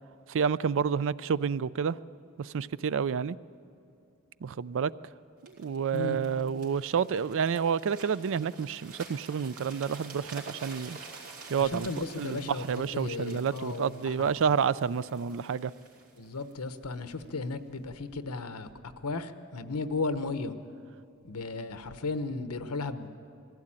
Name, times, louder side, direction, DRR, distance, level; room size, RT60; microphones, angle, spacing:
voice 1, 0.3-2.0 2.4-3.4 4.4-4.9 5.4-11.0 11.5-15.7, right 6 dB, 60° right, 18 dB, 0.4 m, -29 dB
sound 1, 5.5-17.3 17.9-18.1, right 3 dB, 75° right, 3.4 m, -49 dB
voice 2, 11.6-14.3 16.2-18.7 19.0-20.5 21.2-23.1, left 3 dB, 90° left, 10 dB, 1.0 m, -35 dB
21.0 x 16.0 x 8.8 m, 2.5 s
head